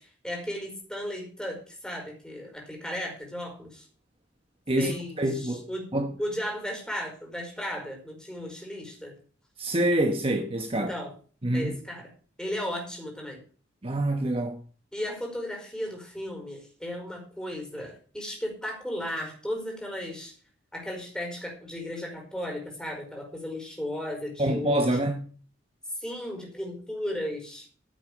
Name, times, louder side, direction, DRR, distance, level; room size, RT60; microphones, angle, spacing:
voice 1, 0.0-3.9 4.8-5.9 6.2-9.2 10.7-11.1 11.5-12.1 12.4-13.4 14.9-20.3 20.7-24.9 26.0-27.7, equal, 5° left, 4.9 m, -35 dB
voice 2, 4.7-6.1 9.6-10.9 11.4-11.8 13.8-14.6 24.4-25.3, right 1 dB, 30° right, 1.2 m, -26 dB
15.0 x 8.0 x 5.1 m
head